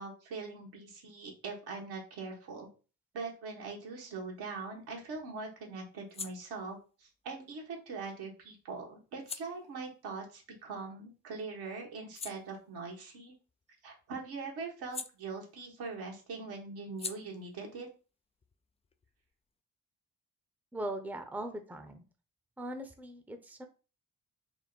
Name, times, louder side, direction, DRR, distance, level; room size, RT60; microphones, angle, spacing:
voice 1, 0.0-2.7 3.1-13.3 13.8-17.9, right 4 dB, 75° right, 0 dB, 1.4 m, -42 dB
sound 1, 4.4-11.2 11.6-15.9 16.1-19.5, left 5 dB, 15° left, 0.3 m, -49 dB
voice 2, 20.7-22.0 22.6-23.7, right 1 dB, 5° right, 6 dB, 0.7 m, -40 dB
3.7 x 2.1 x 4.0 m, 0.34 s
supercardioid pair, 50°, 38 cm